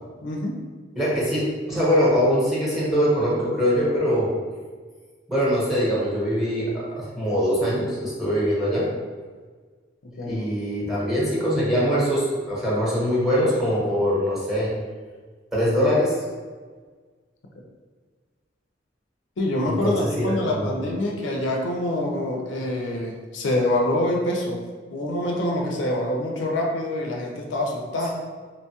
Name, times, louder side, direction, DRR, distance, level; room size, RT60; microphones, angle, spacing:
voice 1, 0.2-0.6 10.2-10.4 19.4-24.6 24.9-28.1, left 1 dB, 70° left, 0 dB, 0.4 m, -25 dB
voice 2, 0.9-4.3 5.3-8.8 10.2-14.7 15.5-16.2 19.6-20.7, equal, ahead, -7 dB, 0.9 m, -23 dB
3.0 x 2.2 x 2.8 m, 1.5 s
head